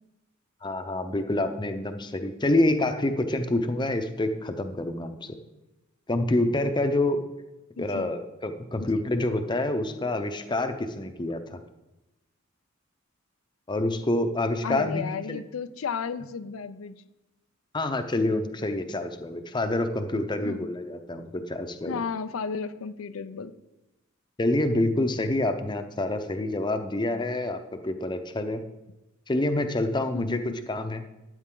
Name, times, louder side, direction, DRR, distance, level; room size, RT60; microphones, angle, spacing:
voice 1, 0.6-5.4 6.1-7.2 7.8-11.6 13.7-15.4 17.7-22.0 24.4-28.6 29.3-30.4 30.7-31.0, left 1 dB, 20° left, 8 dB, 0.7 m, -27 dB
voice 2, 7.8-8.1 8.8-8.9 14.6-17.0 20.4-20.7 21.9-23.6 30.1-30.6, left 5 dB, 85° left, 12 dB, 0.5 m, -33 dB
12.5 x 8.7 x 3.8 m, 0.99 s
head